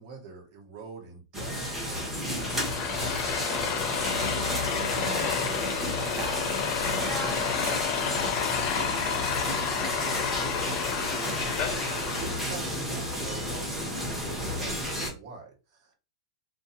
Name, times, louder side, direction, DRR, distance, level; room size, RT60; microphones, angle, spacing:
voice 1, 0.0-2.6 3.0-3.6 11.6-15.9, right 5 dB, 50° right, 1.3 m, -45 dB
sound 1, 1.3-15.1, equal, 5° right, 1.0 m, -32 dB
sound 2, 2.3-12.6, left 7 dB, 40° left, 0.5 m, -30 dB
voice 2, 4.1-6.4 7.0-11.0, right 5 dB, 30° right, 0.6 m, -43 dB
2.6 x 2.3 x 2.5 m
hypercardioid pair, 115°, 3 cm